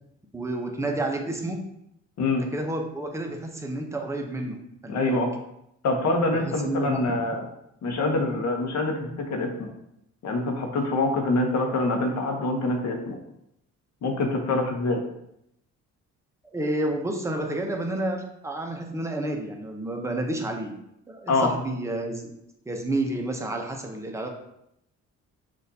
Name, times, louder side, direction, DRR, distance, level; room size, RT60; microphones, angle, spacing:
voice 1, 0.3-1.6 2.4-4.6 4.8-5.2 6.3-7.2 7.9-8.0 16.5-20.7 21.1-22.3 22.7-24.3, right 1 dB, 10° right, 2 dB, 0.7 m, -30 dB
voice 2, 4.9-5.3 5.8-7.4 7.8-9.7 10.2-13.2 14.0-15.0 21.3-21.5, left 2 dB, 65° left, 3 dB, 0.9 m, -25 dB
6.2 x 2.5 x 2.7 m, 0.80 s
cardioid pair, 90°, 30 cm